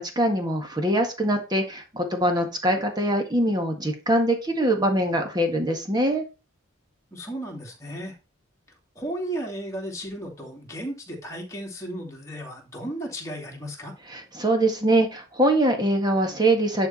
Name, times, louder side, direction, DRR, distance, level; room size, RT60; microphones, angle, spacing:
voice 1, 0.0-6.2 14.1-16.9, right 1 dB, 20° right, 4 dB, 1.7 m, -23 dB
voice 2, 7.1-8.1 9.0-13.9, right 1 dB, 15° left, -1 dB, 2.8 m, -34 dB
10.5 x 4.5 x 4.2 m, 0.29 s
head